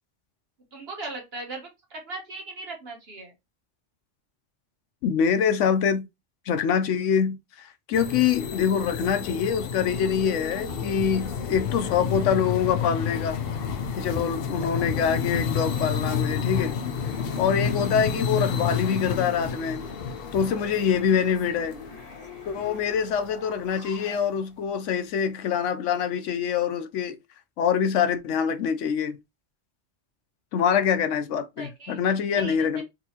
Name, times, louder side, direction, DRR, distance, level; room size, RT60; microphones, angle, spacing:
voice 1, 0.7-3.3 17.7-17.9 20.7-20.9 31.6-32.0 32.3-32.8, right 2 dB, 55° right, 1.4 m, -39 dB
voice 2, 5.0-6.1 6.5-13.4 14.0-16.8 17.4-19.8 20.3-21.7 22.5-27.2 27.6-29.2 30.5-32.8, left 7 dB, 90° left, 1.0 m, -25 dB
sound 1, 7.9-23.2, left 6 dB, 60° left, 0.7 m, -30 dB
sound 2, 17.0-24.2, left 3 dB, 35° left, 1.1 m, -44 dB
4.0 x 2.7 x 2.8 m
omnidirectional pair, 1.2 m